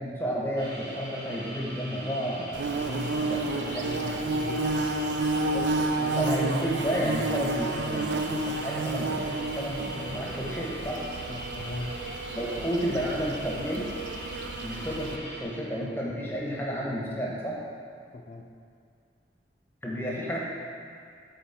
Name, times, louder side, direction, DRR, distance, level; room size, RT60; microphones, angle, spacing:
voice 1, 0.0-2.8 3.3-3.4 3.7-3.9 5.5-5.7 6.0-11.0 12.3-13.9 14.6-17.6 19.8-20.4, equal, 15° left, -5 dB, 1.0 m, -31 dB
sound 1, 0.6-15.4, equal, 65° right, 1.6 m, -42 dB
Bird / Buzz, 2.5-15.2, right 2 dB, 90° right, 0.5 m, -31 dB
voice 2, 2.7-5.8 11.3-12.0 18.1-18.5, left 2 dB, 40° left, 3 dB, 0.5 m, -39 dB
7.4 x 4.0 x 4.2 m, 2.3 s
head